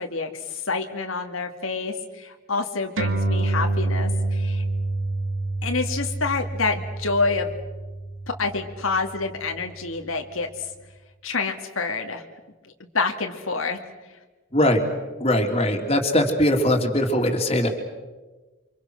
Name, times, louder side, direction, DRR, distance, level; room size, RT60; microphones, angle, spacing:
voice 1, 0.0-4.6 5.6-7.5 8.3-10.7 11.2-12.2 12.9-13.8, left 4 dB, 85° left, 3 dB, 2.2 m, -27 dB
sound 1, 3.0-9.8, right 2 dB, 75° right, 2.3 m, -27 dB
voice 2, 14.5-14.8 15.2-17.7, left 1 dB, 30° left, 2 dB, 3.0 m, -21 dB
29.5 x 26.0 x 6.4 m, 1.2 s
head